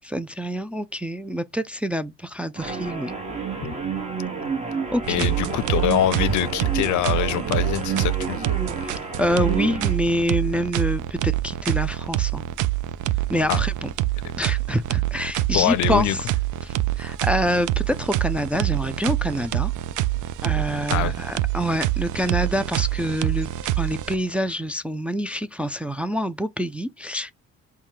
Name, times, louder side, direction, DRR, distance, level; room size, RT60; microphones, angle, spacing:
voice 1, 0.0-3.1 4.9-5.3 8.8-12.4 13.3-13.9 14.4-16.3 16.6-19.7 20.4-23.5 23.8-27.3, equal, 5° right, 0.3 m, -26 dB
sound 1, 2.5-10.0, right 5 dB, 20° right, 1.3 m, -30 dB
sound 2, 5.0-24.5, right 15 dB, 75° right, 0.5 m, -26 dB
voice 2, 5.1-8.5 13.5-13.7 15.5-16.2 20.9-21.2, left 13 dB, 75° left, 0.5 m, -24 dB
5.4 x 2.3 x 3.1 m
cardioid pair, 90°, 30 cm